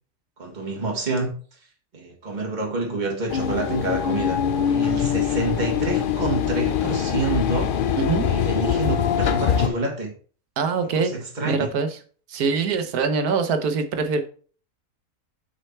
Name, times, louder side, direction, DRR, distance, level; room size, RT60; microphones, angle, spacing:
voice 1, 0.4-1.3 1.9-4.4 4.7-7.7 8.2-10.1 10.9-11.6, right 2 dB, 30° right, 1.8 m, -27 dB
sound 1, 3.3-9.7, left 8 dB, 60° left, 0.5 m, -23 dB
voice 2, 8.0-8.3 10.6-11.1 11.4-11.9 12.3-14.2, right 5 dB, 90° right, 1.4 m, -23 dB
6.4 x 5.4 x 4.4 m
omnidirectional pair, 1.6 m